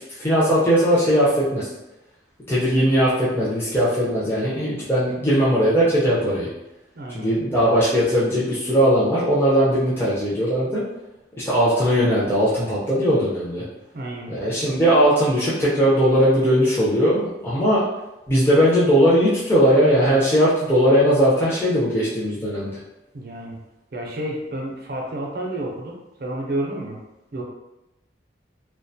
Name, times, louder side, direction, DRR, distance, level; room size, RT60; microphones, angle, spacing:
voice 1, 0.2-1.7 2.5-6.5 7.1-10.8 11.4-13.6 14.3-17.8 18.3-22.7, equal, 15° left, -9 dB, 0.5 m, -19 dB
voice 2, 7.0-7.3 13.9-14.3 23.1-23.6 23.9-25.9 26.2-27.0 27.3-27.4, right 1 dB, 55° right, -1 dB, 0.5 m, -30 dB
2.3 x 2.2 x 2.6 m, 0.94 s
head